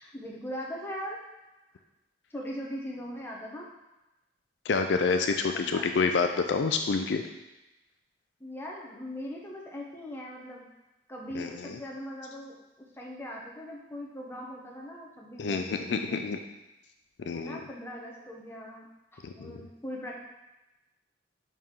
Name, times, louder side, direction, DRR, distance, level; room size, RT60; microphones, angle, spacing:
voice 1, 0.0-1.2 2.3-3.7 5.6-5.8 8.4-10.7 11.1-16.4 17.3-20.2, equal, 15° left, -2 dB, 0.9 m, -40 dB
voice 2, 4.7-7.2 11.3-11.8 15.4-16.4 17.2-17.6 19.2-19.6, left 4 dB, 70° left, 6 dB, 0.4 m, -28 dB
5.5 x 4.7 x 3.7 m, 0.99 s
head